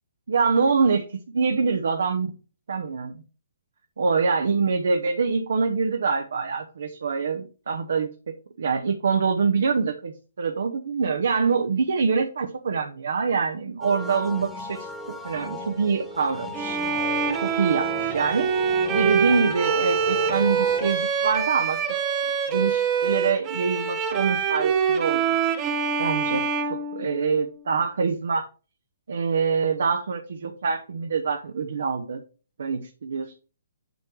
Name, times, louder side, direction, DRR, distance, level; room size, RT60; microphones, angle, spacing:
voice 1, 0.3-1.0 1.3-2.3 2.7-3.1 4.0-8.1 8.6-14.9 15.2-16.8 17.4-18.5 18.9-21.8 22.5-25.2 26.0-26.5 26.9-28.4 29.1-32.2 32.6-33.4, right 5 dB, 65° right, 4 dB, 0.9 m, -25 dB
sound 1, 13.8-20.9, left 3 dB, 5° left, 1.4 m, -37 dB
Bowed string instrument, 16.5-27.5, right 6 dB, 25° right, 1.1 m, -25 dB
8.1 x 4.6 x 4.6 m, 0.35 s
figure-of-eight pair, 130°, 0 cm